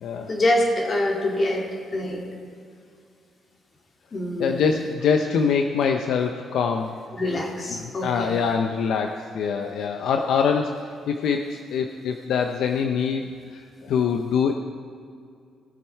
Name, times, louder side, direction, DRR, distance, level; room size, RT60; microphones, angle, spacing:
voice 1, 0.3-1.7 1.9-2.3 4.1-4.8 7.1-8.4, left 1 dB, 40° left, 1 dB, 2.7 m, -25 dB
voice 2, 4.4-6.9 7.3-7.4 7.7-10.8 11.1-14.5, left 6 dB, 75° left, 5 dB, 0.7 m, -24 dB
19.5 x 7.7 x 4.6 m, 2.4 s
cardioid pair, 90°, 0 cm